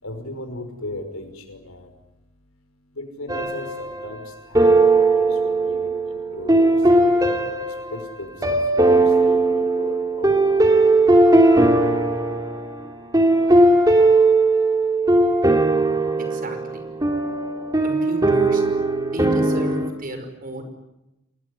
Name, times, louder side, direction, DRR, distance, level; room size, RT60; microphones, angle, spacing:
voice 1, 0.0-1.9 3.0-4.2 4.5-4.7 5.2-5.3 5.7-7.5 7.9-8.6 8.9-10.7, left 2 dB, 90° left, 7 dB, 5.7 m, -36 dB
sound 1, 3.3-4.2 4.5-19.9, right 2 dB, 20° right, 2.9 m, -18 dB
voice 2, 16.2-16.8 17.8-18.6 19.1-20.6, right 1 dB, 40° right, 7 dB, 5.4 m, -32 dB
29.5 x 20.0 x 9.9 m, 0.95 s
head